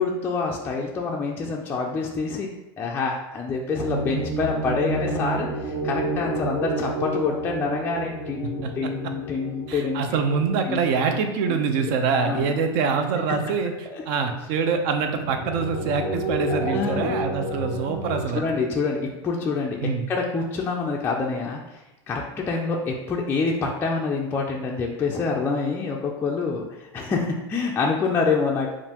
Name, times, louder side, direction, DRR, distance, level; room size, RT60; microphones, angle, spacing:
voice 1, 0.0-2.5 2.8-10.0 10.6-10.8 11.1-11.2 11.5-11.6 12.1-12.5 13.9-14.0 16.5-17.1 18.3-19.8 20.1-21.8 22.1-26.6 26.9-28.7, left 4 dB, 15° left, -2 dB, 0.3 m, -26 dB
sound 1, 3.7-13.4 13.9-14.0 14.6-18.2, right 1 dB, 10° right, 1.0 m, -31 dB
voice 2, 8.6-8.9 9.7-18.4 19.8-20.1, right 5 dB, 55° right, 5 dB, 0.6 m, -25 dB
5.3 x 2.5 x 2.8 m, 0.98 s
supercardioid pair, 135°, 13 cm